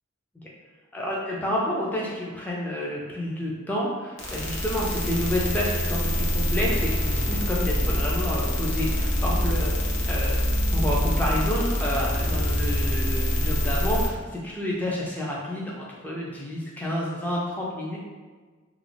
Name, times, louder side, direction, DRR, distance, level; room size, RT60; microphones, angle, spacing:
voice 1, 0.9-18.0, left 1 dB, 10° left, -5 dB, 0.3 m, -29 dB
sound 1, 4.2-14.1, left 1 dB, 65° left, 0.7 m, -25 dB
2.4 x 2.1 x 3.2 m, 1.4 s
head